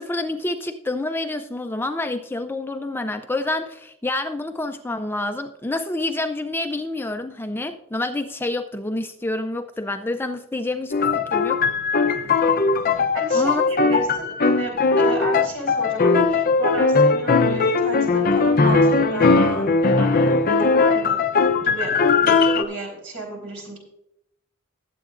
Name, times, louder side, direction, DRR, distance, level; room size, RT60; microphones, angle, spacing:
voice 1, 0.0-10.9 11.3-11.7 12.0-12.2 13.3-13.6, left 2 dB, 10° left, 6 dB, 0.4 m, -28 dB
sound 1, 10.9-22.6, left 4 dB, 40° left, 0.7 m, -19 dB
voice 2, 12.9-21.2 21.6-23.8, right 1 dB, 60° right, 0 dB, 4.3 m, -33 dB
19.5 x 8.1 x 2.5 m, 0.79 s
head